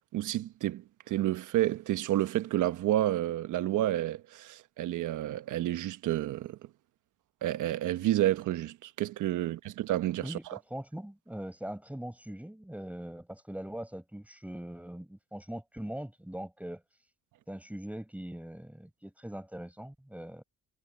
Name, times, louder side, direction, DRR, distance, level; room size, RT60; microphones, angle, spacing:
voice 1, 0.1-6.6 7.4-10.6, right 14 dB, 80° right, 1.2 m, -30 dB
voice 2, 10.2-16.8 17.5-20.4, right 1 dB, 5° right, 4.8 m, -41 dB
cardioid pair, 90°, 30 cm